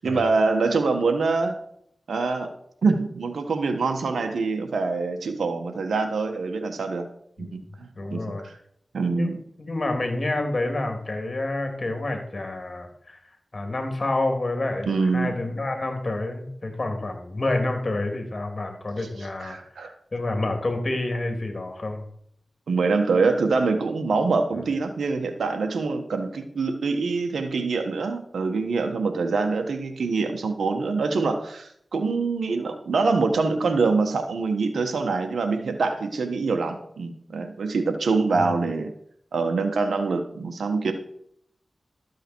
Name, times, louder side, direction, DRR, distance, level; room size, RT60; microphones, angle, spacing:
voice 1, 0.0-1.6 2.1-2.5 2.8-7.1 7.4-8.2 8.9-9.4 14.9-15.3 19.4-19.9 22.7-38.9 39.3-40.9, right 4 dB, 90° right, 5 dB, 1.3 m, -25 dB
voice 2, 7.9-8.4 9.1-9.3 9.6-13.2 13.5-19.6 20.1-22.0 24.5-24.6 38.4-38.6, left 2 dB, 50° left, 4 dB, 3.4 m, -28 dB
13.0 x 7.9 x 4.6 m, 0.69 s
cardioid pair, 40°, 0 cm